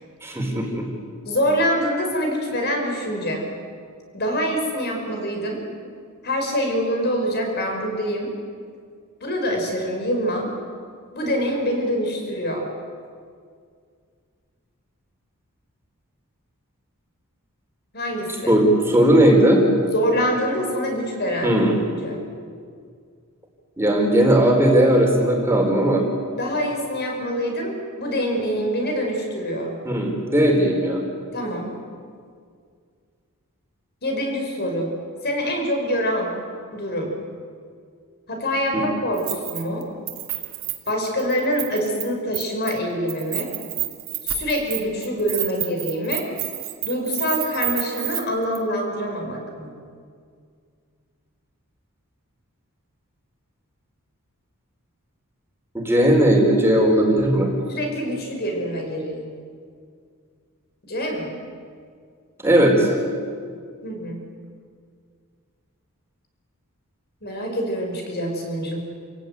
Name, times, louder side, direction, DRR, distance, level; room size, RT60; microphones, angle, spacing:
voice 1, 0.2-0.9 18.5-19.6 21.4-21.7 23.8-26.0 29.8-31.0 38.7-38.8 55.7-57.5 62.4-62.9, right 1 dB, 10° right, 0 dB, 4.4 m, -17 dB
voice 2, 1.2-3.5 4.1-5.6 6.2-8.4 9.2-10.5 11.1-12.7 17.9-18.5 19.9-21.6 22.0-22.2 26.3-29.8 31.3-31.8 34.0-34.9 35.2-36.3 36.7-37.2 38.3-39.9 40.9-43.5 44.2-46.3 46.8-49.7 57.7-59.3 60.8-61.4 63.8-64.2 67.2-68.8, equal, 50° left, 2 dB, 6.0 m, -25 dB
Keys jangling, 39.2-39.8 40.1-42.0 42.3-42.8 43.1-48.2 48.5-48.6, right 16 dB, 65° right, 2.5 m, -29 dB
29.5 x 17.0 x 9.5 m, 2.1 s
head